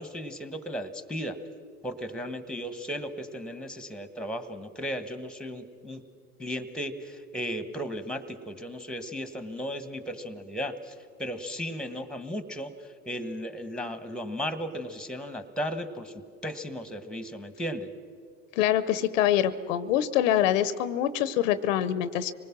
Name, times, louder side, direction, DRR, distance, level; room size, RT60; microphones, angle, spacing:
voice 1, 0.0-1.4 1.8-6.0 6.4-10.9 11.2-16.1 16.4-17.9, equal, ahead, 11 dB, 1.5 m, -35 dB
voice 2, 18.6-22.3, left 11 dB, 80° left, 15 dB, 0.8 m, -25 dB
25.5 x 19.5 x 6.1 m, 2.2 s
hypercardioid pair, 85°, 38 cm